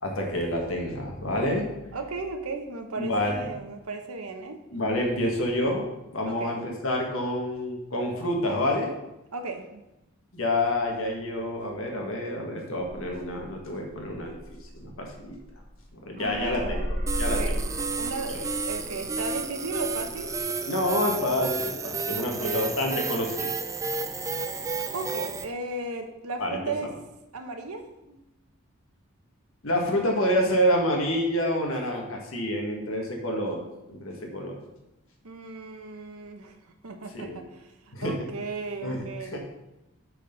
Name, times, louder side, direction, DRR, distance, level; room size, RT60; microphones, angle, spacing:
voice 1, 0.0-1.7 3.0-3.3 4.7-5.9 6.1-8.9 10.3-15.3 16.0-17.5 18.3-18.4 20.7-23.5 26.4-26.6 29.6-33.6 33.9-34.6 37.1-37.4 37.9-38.1 38.8-39.0 39.3-39.4, left 1 dB, 65° left, 1 dB, 1.7 m, -28 dB
voice 2, 1.9-4.6 6.3-6.5 9.3-9.8 16.2-16.9 17.2-17.7 18.0-20.4 22.2-22.8 24.9-26.9 27.3-28.2 35.2-36.6 36.8-39.4, right 3 dB, 85° right, 6 dB, 1.0 m, -36 dB
sound 1, 12.8-15.9 16.2-20.4, equal, 35° right, 1.3 m, -35 dB
sound 2, 17.1-25.4, right 4 dB, 15° right, 0.4 m, -31 dB
6.5 x 6.3 x 5.2 m, 0.94 s
head